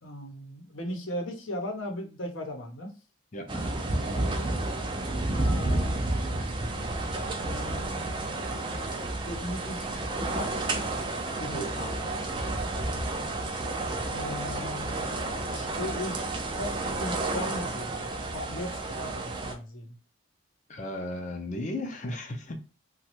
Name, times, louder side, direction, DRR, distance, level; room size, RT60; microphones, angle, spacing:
voice 1, 0.0-2.9 4.1-4.6 5.3-6.5 7.3-8.4 9.3-9.9 10.2-10.7 11.4-11.6 14.1-20.0, left 1 dB, 75° left, 0.8 m, -38 dB
voice 2, 3.3-3.7 11.5-12.0 20.7-22.6, left 1 dB, 35° left, 0.5 m, -35 dB
sound 1, 3.5-19.5, right 2 dB, 25° right, 0.3 m, -31 dB
3.0 x 2.3 x 2.9 m
head